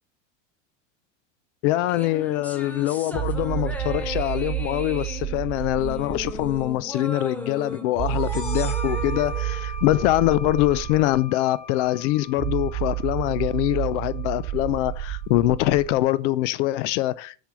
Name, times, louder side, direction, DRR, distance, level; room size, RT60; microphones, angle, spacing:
voice 1, 1.6-17.4, left 16 dB, 65° left, 0.7 m, -24 dB
sound 1, 1.9-10.5, left 1 dB, 5° left, 0.9 m, -37 dB
sound 2, 3.1-6.8 8.0-11.2 12.4-16.1, right 16 dB, 40° right, 1.7 m, -30 dB
sound 3, 8.2-15.5, left 3 dB, 40° left, 4.1 m, -41 dB
7.5 x 5.5 x 6.7 m
supercardioid pair, 140°, 39 cm